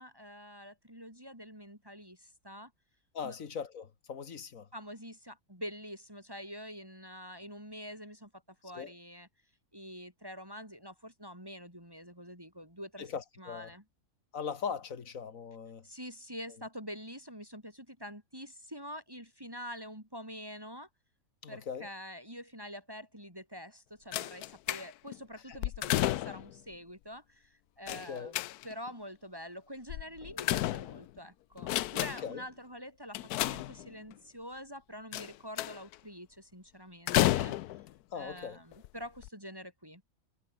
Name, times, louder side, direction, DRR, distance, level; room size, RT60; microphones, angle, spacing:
voice 1, 0.0-2.7 3.2-3.4 4.7-9.3 9.7-13.1 13.4-13.8 15.8-20.9 21.5-28.4 28.6-37.6 38.2-40.0, equal, 15° right, 7.5 m, -46 dB
voice 2, 3.1-4.7 8.7-8.9 13.0-13.7 14.3-15.9 21.4-21.9 25.5-25.6 25.8-25.9 27.9-28.3 32.2-32.4 38.1-38.6, left 6 dB, 65° left, 1.9 m, -40 dB
sound 1, 24.1-25.2 25.6-26.6 27.9-28.9 29.9-31.2 31.6-32.4 33.1-34.1 35.1-35.9 37.1-37.9 38.7-38.9 39.2-39.3, left 15 dB, 90° left, 1.1 m, -32 dB
omnidirectional pair, 1.6 m